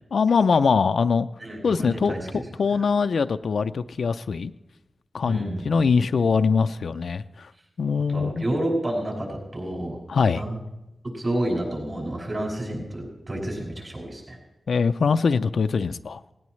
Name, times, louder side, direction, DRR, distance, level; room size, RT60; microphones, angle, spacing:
voice 1, 0.1-1.3 1.6-4.5 5.1-7.5 7.8-8.4 10.1-10.4 14.7-16.2, left 5 dB, 85° left, 10 dB, 0.4 m, -22 dB
voice 2, 1.4-2.2 2.7-2.8 5.2-5.7 8.1-10.0 10.3-10.6 11.1-14.4, right 1 dB, 40° right, -2 dB, 5.8 m, -29 dB
18.0 x 18.0 x 3.2 m, 0.94 s
wide cardioid pair, 115°, 0 cm